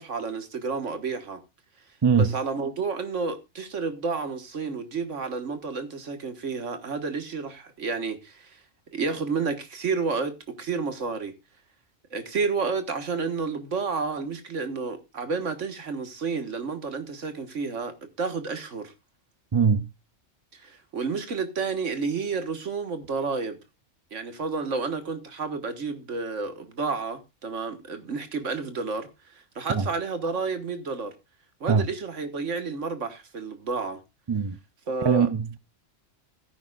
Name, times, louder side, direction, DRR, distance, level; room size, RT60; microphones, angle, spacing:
voice 1, 0.0-1.4 2.2-8.6 8.9-11.3 12.1-18.9 20.6-23.6 24.1-31.2 31.6-34.0 34.9-35.3, right 4 dB, 75° right, 1.8 m, -30 dB
voice 2, 2.0-2.4 19.5-19.9 29.7-29.9 31.7-31.9 34.3-34.6 35.0-35.6, right 6 dB, 35° right, 0.4 m, -22 dB
16.5 x 9.7 x 2.4 m
omnidirectional pair, 1.3 m